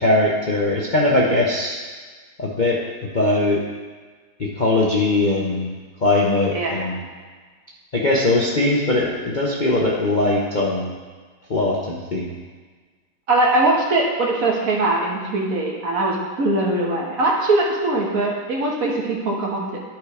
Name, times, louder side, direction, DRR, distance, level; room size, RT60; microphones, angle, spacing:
voice 1, 0.0-1.8 2.4-2.8 3.1-3.6 4.4-5.7 6.0-7.0 7.9-10.9 11.5-12.3, left 2 dB, 45° left, -4 dB, 0.6 m, -20 dB
voice 2, 6.5-7.0 13.3-19.8, right 2 dB, 50° right, -2 dB, 1.7 m, -21 dB
10.5 x 4.6 x 4.9 m, 1.5 s
omnidirectional pair, 2.1 m